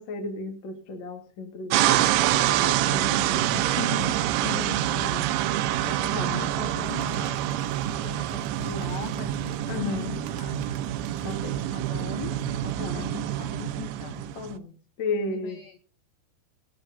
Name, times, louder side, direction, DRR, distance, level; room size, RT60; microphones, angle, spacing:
voice 1, 0.0-2.0 2.3-4.4 5.0-5.1 6.1-6.6 9.7-10.2 11.2-11.6 12.8-13.2 14.3-15.6, left 3 dB, 65° left, 5 dB, 1.1 m, -34 dB
sound 1, 1.7-14.5, right 13 dB, 85° right, 3.1 m, -26 dB
voice 2, 4.3-5.5 5.8-7.4 8.0-10.6 11.7-12.4 12.6-14.2 15.3-15.8, left 9 dB, 85° left, 9 dB, 2.0 m, -40 dB
Bird, 6.8-14.5, right 9 dB, 70° right, 3.2 m, -51 dB
18.0 x 15.0 x 2.6 m, 0.36 s
omnidirectional pair, 5.2 m